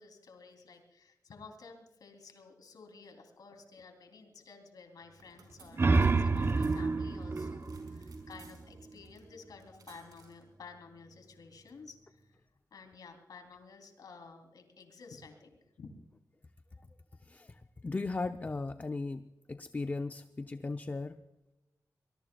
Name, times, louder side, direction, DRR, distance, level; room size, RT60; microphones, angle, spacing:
voice 1, 0.0-12.4 12.7-15.9, left 4 dB, 90° left, 4 dB, 3.1 m, -53 dB
sound 1, 5.0-12.4, right 2 dB, 85° right, 5.1 m, -59 dB
sound 2, 5.5-8.9, right 3 dB, 40° right, 0.7 m, -29 dB
voice 2, 17.3-21.2, left 3 dB, 25° left, 8 dB, 0.6 m, -37 dB
23.5 x 20.5 x 2.3 m, 0.95 s
wide cardioid pair, 90°, 6 cm